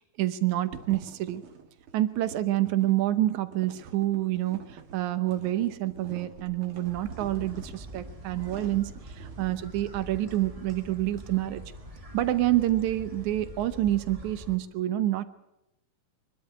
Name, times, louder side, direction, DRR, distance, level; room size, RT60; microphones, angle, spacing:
voice 1, 0.0-1.4 1.9-8.9 9.2-11.6 12.1-15.2, right 14 dB, 80° right, 12 dB, 2.3 m, -27 dB
sound 1, 0.7-9.6, right 6 dB, 50° right, 2.4 m, -47 dB
sound 2, 6.8-14.6, equal, 20° right, 0.9 m, -44 dB
24.0 x 12.0 x 9.5 m, 0.93 s
omnidirectional pair, 3.4 m